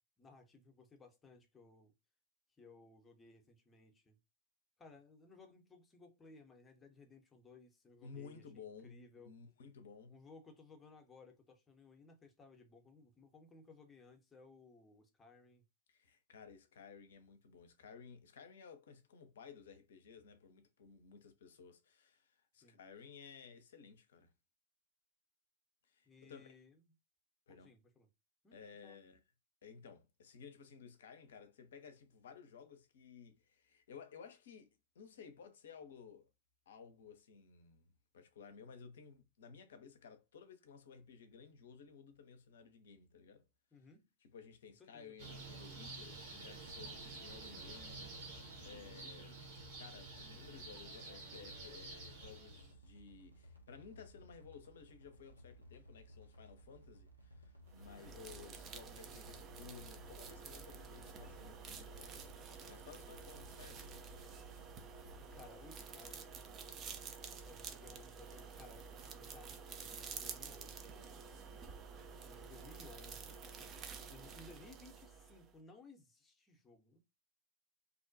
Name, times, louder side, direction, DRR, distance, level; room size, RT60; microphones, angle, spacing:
voice 1, 0.2-1.9 2.6-4.2 4.8-9.3 10.1-15.6 22.6-22.8 26.1-26.8 27.5-28.1 28.4-29.0 43.7-44.1 44.8-45.1 58.0-58.2 65.3-66.4 67.3-71.3 72.3-73.4 74.0-77.0, left 3 dB, 15° left, 0.6 m, -60 dB
voice 2, 8.0-9.0 9.2-10.1 15.9-24.3 25.8-26.5 27.5-27.7 28.5-29.2 29.6-36.3 36.7-43.4 44.2-49.4 49.8-64.4, left 6 dB, 60° left, 0.5 m, -56 dB
sound 1, 45.2-52.7, right 3 dB, 45° right, 1.1 m, -50 dB
sound 2, 46.6-65.5, equal, 90° right, 0.5 m, -59 dB
sound 3, 57.7-75.5, right 5 dB, 30° right, 0.4 m, -50 dB
2.5 x 2.1 x 2.6 m
figure-of-eight pair, 90°, 0 cm